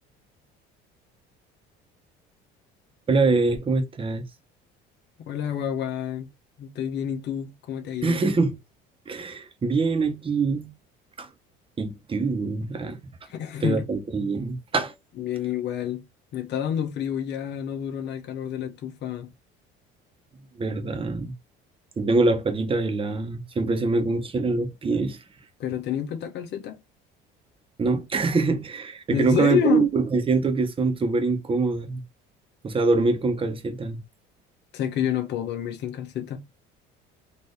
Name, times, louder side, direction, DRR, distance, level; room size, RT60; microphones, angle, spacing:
voice 1, 3.1-4.2 8.0-8.5 9.1-10.7 11.2-11.3 11.8-13.0 13.6-14.9 20.6-21.3 22.0-25.2 27.8-32.0 32.6-34.0, right 3 dB, 25° right, 1.2 m, -24 dB
voice 2, 5.2-6.3 6.6-8.2 13.3-13.9 15.2-16.1 16.3-19.3 25.6-26.8 29.1-29.9 34.7-36.4, left 9 dB, 55° left, 1.2 m, -28 dB
4.2 x 2.9 x 3.3 m
cardioid pair, 115°, 21 cm